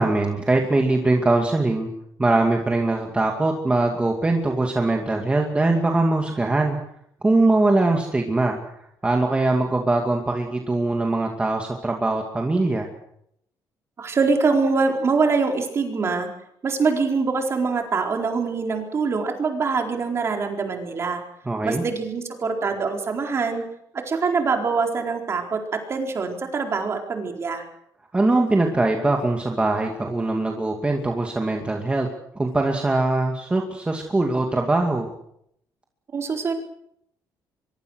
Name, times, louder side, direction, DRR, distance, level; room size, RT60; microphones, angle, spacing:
voice 1, 0.0-1.9 2.2-6.8 7.2-8.6 9.0-12.9 21.5-21.8 28.1-32.1 32.4-35.1, right 2 dB, 15° right, 2 dB, 2.4 m, -22 dB
voice 2, 14.0-16.3 16.6-21.2 21.6-23.6 24.1-27.6 36.1-36.5, right 4 dB, 35° right, 3 dB, 4.3 m, -24 dB
24.0 x 23.5 x 6.5 m, 0.74 s
cardioid pair, 140°, 8 cm